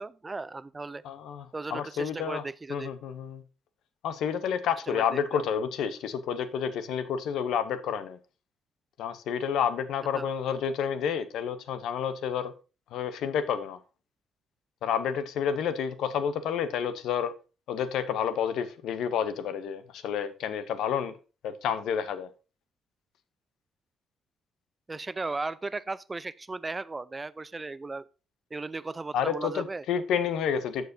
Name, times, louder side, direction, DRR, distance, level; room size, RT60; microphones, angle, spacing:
voice 1, 0.0-1.0 1.5-2.9 4.9-5.4 10.1-10.3 24.9-28.1 28.5-29.8, right 3 dB, 25° right, 0.4 m, -36 dB
voice 2, 1.0-1.5 1.7-2.4 2.7-3.4 4.0-8.2 9.0-12.5 12.9-13.8 14.8-17.3 17.7-21.1 21.4-22.3 29.1-30.9, left 7 dB, 80° left, 0.7 m, -30 dB
14.0 x 4.7 x 2.7 m
cardioid pair, 90°, 0 cm